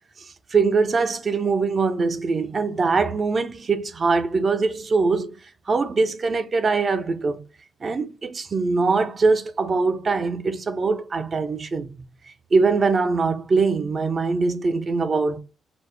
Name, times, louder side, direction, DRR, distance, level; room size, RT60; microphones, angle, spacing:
voice 1, 0.2-5.4 5.7-7.4 7.8-11.9 12.5-15.4, right 4 dB, 40° right, 0.6 m, -22 dB
6.0 x 2.1 x 3.3 m
cardioid pair, 90°, 0 cm